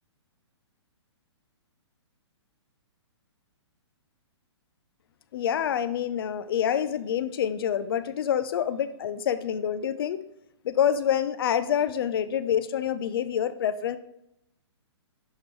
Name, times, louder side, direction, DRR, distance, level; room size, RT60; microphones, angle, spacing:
voice 1, 5.3-10.2 10.6-14.0, left 9 dB, 50° left, 14 dB, 0.5 m, -27 dB
11.0 x 3.7 x 3.1 m, 0.80 s
hypercardioid pair, 155°, 15 cm